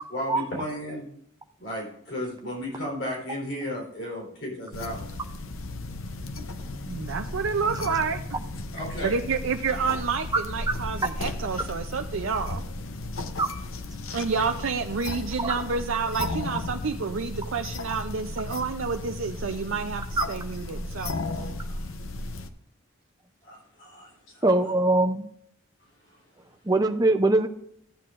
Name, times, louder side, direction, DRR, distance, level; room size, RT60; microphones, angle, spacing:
voice 1, 0.1-1.1 1.6-5.1 8.7-9.1 21.7-21.8 23.4-24.1, equal, 55° left, -3 dB, 4.0 m, -34 dB
sound 1, 4.7-22.5, left 2 dB, 85° left, 0.8 m, -35 dB
voice 2, 6.9-8.4 9.0-12.6 14.1-21.2, right 5 dB, 75° right, 5 dB, 0.5 m, -29 dB
voice 3, 24.4-25.3 26.7-27.5, right 2 dB, 20° right, 5 dB, 0.6 m, -21 dB
14.5 x 8.7 x 2.5 m, 0.71 s
head